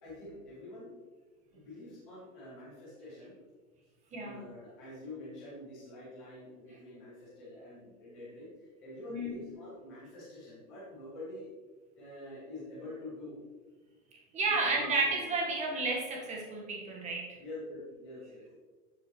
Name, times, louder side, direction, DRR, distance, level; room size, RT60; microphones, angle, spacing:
voice 1, 0.0-1.0 1.5-3.3 4.2-11.5 11.9-13.4 14.4-15.4 17.4-18.6, left 1 dB, 5° left, -10 dB, 0.3 m, -46 dB
voice 2, 4.1-4.4 9.1-9.5 14.3-17.4, right 3 dB, 15° right, -1 dB, 1.6 m, -32 dB
12.0 x 7.6 x 3.2 m, 1.4 s
supercardioid pair, 160°, 46 cm